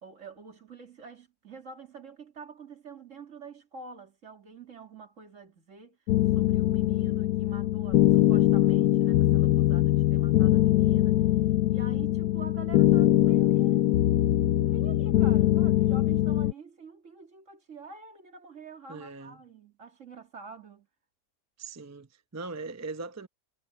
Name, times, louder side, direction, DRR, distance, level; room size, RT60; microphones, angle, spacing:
voice 1, 0.0-6.0 6.3-11.2 11.7-13.9 14.4-20.9, right 5 dB, 50° right, 2.5 m, -47 dB
sound 1, 6.1-16.5, left 14 dB, 70° left, 1.1 m, -22 dB
voice 2, 18.9-19.4 21.6-23.3, right 3 dB, 25° right, 0.3 m, -40 dB
omnidirectional pair, 1.8 m